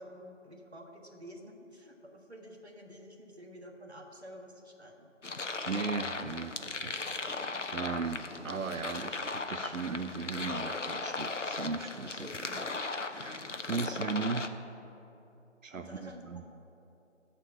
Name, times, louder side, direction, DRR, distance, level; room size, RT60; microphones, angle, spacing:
voice 1, 0.0-5.1 15.7-16.5, equal, 55° right, 1 dB, 1.7 m, -50 dB
sound 1, 5.2-14.5, left 3 dB, 70° left, 0.8 m, -37 dB
voice 2, 5.6-7.5 7.7-14.5 15.6-16.4, right 4 dB, 90° right, 6 dB, 0.6 m, -37 dB
13.5 x 4.6 x 6.9 m, 2.9 s
figure-of-eight pair, 175°, 38 cm